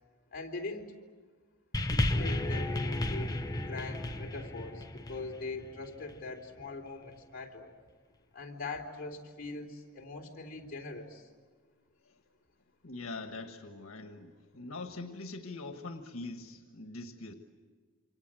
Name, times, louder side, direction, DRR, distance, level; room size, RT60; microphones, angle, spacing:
voice 1, 0.3-0.9 1.9-7.7 8.3-11.3, left 3 dB, 45° left, 0 dB, 3.7 m, -42 dB
sound 1, 1.7-6.3 7.1-7.2, left 1 dB, 20° left, 1.0 m, -33 dB
voice 2, 12.8-17.3, left 3 dB, 90° left, 5 dB, 1.6 m, -43 dB
28.5 x 25.5 x 7.8 m, 1.5 s
head